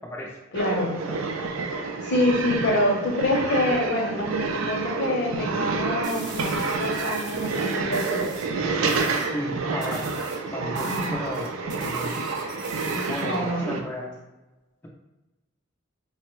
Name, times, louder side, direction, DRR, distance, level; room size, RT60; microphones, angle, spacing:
voice 1, 0.5-0.9 2.0-8.3 10.8-11.2 12.9-13.8, left 1 dB, 60° left, -1 dB, 0.7 m, -26 dB
sound 1, 0.5-13.8, right 4 dB, 85° right, 0.4 m, -29 dB
sound 2, 6.0-8.5 8.9-9.3 9.8-13.5, right 4 dB, 40° right, 0.6 m, -42 dB
voice 2, 9.3-10.1 10.5-12.1 13.1-14.1, equal, 10° left, -3 dB, 0.3 m, -33 dB
3.4 x 2.0 x 3.0 m, 1.1 s
head